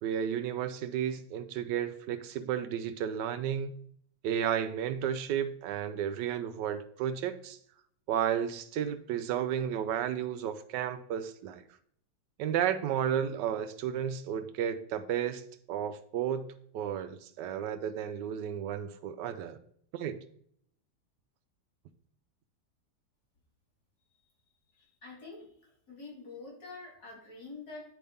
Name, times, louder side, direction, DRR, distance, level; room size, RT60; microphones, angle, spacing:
voice 1, 0.0-3.7 4.2-7.6 8.1-11.6 12.4-15.4 15.7-16.5 16.7-19.6 19.9-20.2, right 9 dB, 85° right, 11 dB, 1.2 m, -32 dB
voice 2, 24.7-27.8, left 3 dB, 65° left, -3 dB, 3.6 m, -47 dB
9.3 x 3.5 x 5.4 m, 0.64 s
omnidirectional pair, 1.8 m